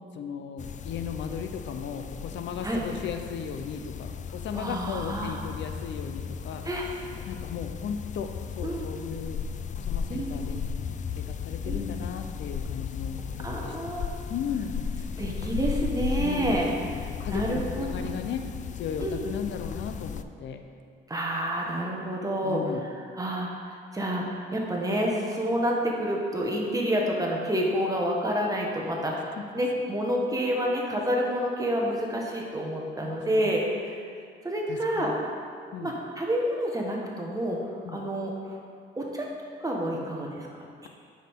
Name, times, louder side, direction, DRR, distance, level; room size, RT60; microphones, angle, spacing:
voice 1, 0.0-6.6 7.3-9.4 9.8-10.6 11.2-13.7 14.3-14.8 16.2-16.6 17.2-18.4 18.7-20.6 22.4-22.8 29.4-29.5 33.0-33.5 34.7-35.2 35.7-35.9 37.8-38.0, left 7 dB, 70° left, 7 dB, 0.7 m, -36 dB
sound 1, 0.6-20.2, left 7 dB, 40° left, 0.4 m, -35 dB
voice 2, 4.5-5.4 6.6-6.8 8.6-8.9 10.1-10.4 11.7-11.8 13.4-14.1 15.2-16.7 17.0-18.1 19.0-19.2 21.1-22.6 23.1-24.2 24.5-34.0 34.4-35.1 35.8-37.6 37.9-38.6 39.0-39.3 39.6-40.5 40.8-40.9, equal, 15° right, -2 dB, 1.5 m, -29 dB
9.4 x 6.3 x 3.7 m, 2.2 s
cardioid pair, 90°, 20 cm